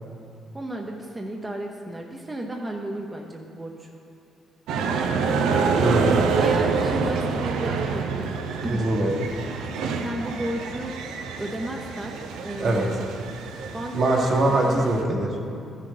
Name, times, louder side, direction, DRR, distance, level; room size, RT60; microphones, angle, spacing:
voice 1, 0.5-3.9 6.3-8.3 8.6-8.9 10.0-13.1 13.7-14.9, right 1 dB, 15° right, 0 dB, 0.8 m, -33 dB
sound 1, 4.7-15.0, right 5 dB, 90° right, 0.7 m, -27 dB
voice 2, 5.8-6.4 8.7-9.3 12.6-12.8 13.9-15.3, right 2 dB, 55° right, -1 dB, 1.7 m, -22 dB
13.5 x 6.4 x 3.9 m, 2.6 s
cardioid pair, 90°, 0 cm